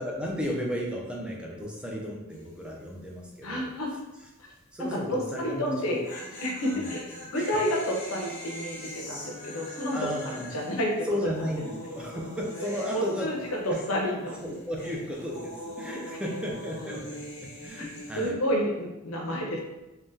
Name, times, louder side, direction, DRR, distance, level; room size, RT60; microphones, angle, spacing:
voice 1, 0.0-3.7 4.7-6.0 6.7-7.0 7.4-7.5 9.9-10.5 11.0-13.3 13.7-13.8 14.4-18.4, equal, 5° right, -2 dB, 0.4 m, -34 dB
sound 1, 2.3-2.7 2.9-3.0 5.7-14.0 14.3-18.3, left 1 dB, 40° left, 1.1 m, -42 dB
voice 2, 3.4-3.9 4.9-6.1 6.4-10.0 10.2-11.3 12.9-14.4 17.8-17.9 18.2-19.6, equal, 70° left, -1 dB, 0.7 m, -30 dB
3.5 x 2.1 x 2.7 m, 1.0 s
head